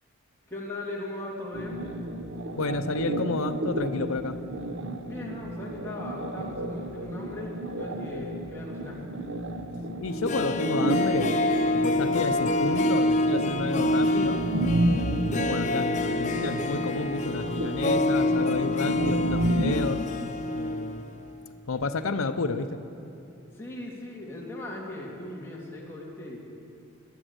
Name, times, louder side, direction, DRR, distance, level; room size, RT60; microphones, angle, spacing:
voice 1, 0.5-1.8 5.0-9.0 23.5-26.4, left 1 dB, 10° left, -4 dB, 2.3 m, -38 dB
sound 1, 1.5-19.9, right 1 dB, 60° right, 0.9 m, -31 dB
voice 2, 2.6-4.4 10.0-11.3 11.7-14.4 14.8-20.0 20.5-21.1 21.7-22.8, left 3 dB, 70° left, 9 dB, 0.7 m, -31 dB
Harp, 10.1-21.1 21.4-21.5, left 1 dB, 35° left, 0.5 m, -27 dB
14.0 x 10.0 x 8.0 m, 2.8 s
head